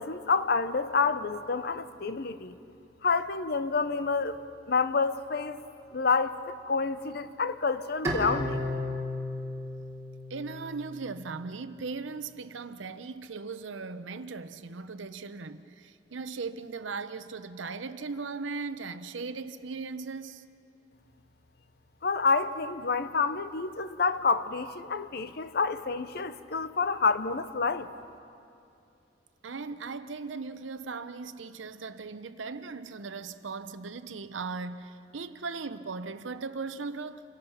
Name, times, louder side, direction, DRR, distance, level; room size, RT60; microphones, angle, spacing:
voice 1, 0.0-2.6 3.0-4.4 4.7-5.6 5.9-8.6 22.0-27.9, left 4 dB, 55° left, 0.7 m, -28 dB
Bowed string instrument, 8.0-11.3, left 1 dB, 15° right, 3.2 m, -34 dB
voice 2, 10.3-20.4 29.4-37.2, right 4 dB, 85° right, 0.8 m, -38 dB
27.0 x 17.5 x 5.8 m
head